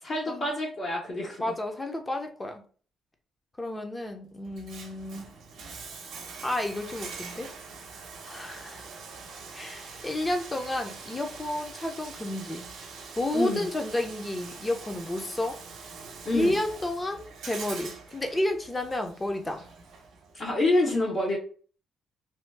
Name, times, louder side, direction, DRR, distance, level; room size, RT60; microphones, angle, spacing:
voice 1, 0.0-1.5 13.3-13.7 16.2-16.6 20.3-21.4, left 2 dB, 50° left, -4 dB, 0.9 m, -27 dB
voice 2, 1.4-2.6 3.6-5.3 6.4-7.5 8.2-8.9 9.5-12.7 13.2-15.6 16.3-19.7, left 1 dB, 20° left, 4 dB, 0.7 m, -31 dB
Bathtub (filling or washing), 4.4-20.4, right 5 dB, 75° right, 0.7 m, -44 dB
2.8 x 2.2 x 3.3 m, 0.42 s
cardioid pair, 90°, 0 cm